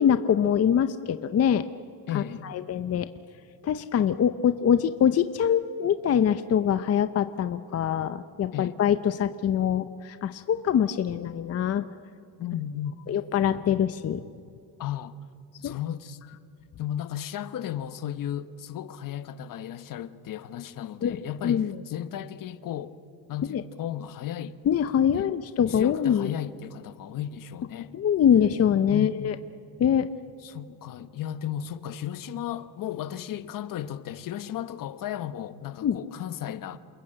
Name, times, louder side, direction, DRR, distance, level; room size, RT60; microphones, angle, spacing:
voice 1, 0.0-1.7 2.1-3.1 3.6-11.9 13.1-14.2 15.6-15.7 21.0-21.2 21.4-21.7 23.5-23.6 24.7-26.3 27.9-29.3 29.8-30.1 35.8-36.0, left 8 dB, 40° left, 0.7 m, -24 dB
voice 2, 2.1-2.5 8.5-8.7 12.4-13.2 14.8-15.1 15.6-16.2 16.8-23.0 23.3-24.6 25.1-25.3 25.7-28.0 28.9-29.3 30.4-36.8, left 10 dB, 60° left, 1.1 m, -35 dB
28.5 x 21.0 x 8.9 m
cardioid pair, 155°, 37 cm